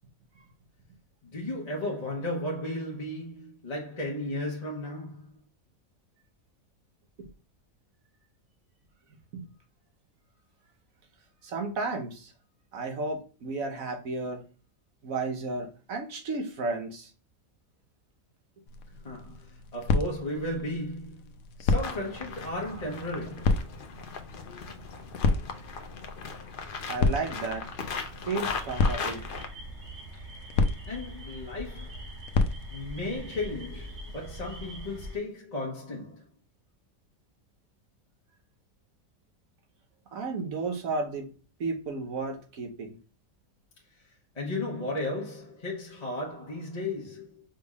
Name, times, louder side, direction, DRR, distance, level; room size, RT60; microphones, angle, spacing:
voice 1, 1.2-5.3 19.0-21.3 21.6-23.7 30.9-32.1 32.7-36.2 44.3-47.4, left 1 dB, 30° left, 1.1 m, -35 dB
voice 2, 11.4-12.3 12.7-14.4 15.0-17.1 26.9-27.7 28.3-29.3 40.1-41.3 41.6-43.0, right 3 dB, 75° right, 1.4 m, -33 dB
sound 1, 18.7-33.2, left 3 dB, 85° left, 1.1 m, -32 dB
sound 2, 21.7-29.5, left 5 dB, 50° left, 0.7 m, -38 dB
sound 3, 28.4-35.2, right 1 dB, 50° right, 2.0 m, -43 dB
5.1 x 3.5 x 2.4 m
omnidirectional pair, 1.5 m